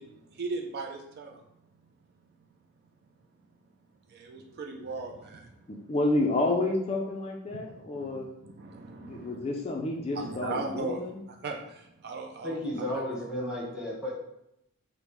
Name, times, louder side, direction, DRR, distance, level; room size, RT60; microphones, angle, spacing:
voice 1, 0.0-1.4 4.1-5.6 7.5-9.5 10.1-12.6 12.9-13.3, right 3 dB, 45° right, 2 dB, 0.4 m, -38 dB
voice 2, 5.7-8.3 9.0-11.2, left 2 dB, 30° left, 0 dB, 0.4 m, -30 dB
voice 3, 12.4-14.1, left 1 dB, 5° right, -6 dB, 1.0 m, -33 dB
5.0 x 2.1 x 3.0 m, 0.81 s
head